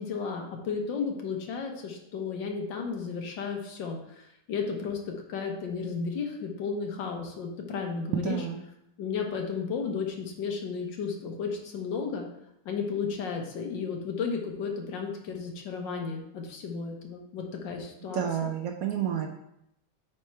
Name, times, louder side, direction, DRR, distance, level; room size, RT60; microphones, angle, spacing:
voice 1, 0.0-8.5 9.0-12.3 12.7-18.5, left 5 dB, 90° left, 2 dB, 1.7 m, -33 dB
voice 2, 8.1-8.6 18.1-19.3, right 9 dB, 65° right, 3 dB, 0.9 m, -30 dB
8.4 x 3.4 x 4.5 m, 0.79 s
omnidirectional pair, 1.9 m